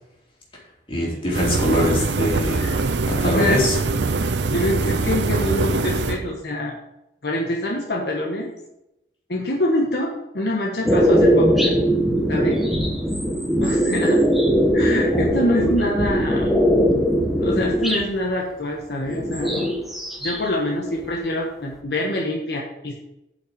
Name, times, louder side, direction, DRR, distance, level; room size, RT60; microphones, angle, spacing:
voice 1, 0.9-3.8, left 1 dB, 30° left, -4 dB, 3.1 m, -23 dB
sound 1, 1.3-6.3, right 3 dB, 75° right, 0.6 m, -23 dB
voice 2, 3.2-3.7 4.5-6.7 7.2-8.5 9.3-11.7 12.3-12.6 13.6-14.2 14.7-16.5 17.4-19.8 20.2-22.9, left 1 dB, 65° left, -2 dB, 1.4 m, -25 dB
sound 2, 10.9-18.1 19.0-20.4 20.7-21.6, equal, ahead, 1.2 m, -20 dB
8.3 x 5.8 x 6.5 m, 0.88 s
head